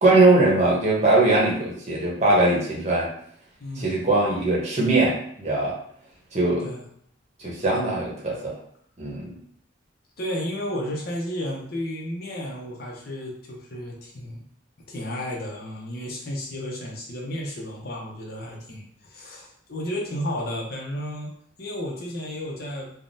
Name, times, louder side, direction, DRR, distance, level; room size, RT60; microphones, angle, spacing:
voice 1, 0.0-3.1 3.8-5.8 6.3-6.6 7.4-8.6 9.0-9.3, right 2 dB, 35° right, -4 dB, 0.8 m, -21 dB
voice 2, 3.6-4.0 6.6-6.8 10.2-14.4 14.9-21.3 21.6-22.9, equal, 50° left, -1 dB, 0.6 m, -32 dB
3.4 x 2.1 x 2.6 m, 0.65 s
head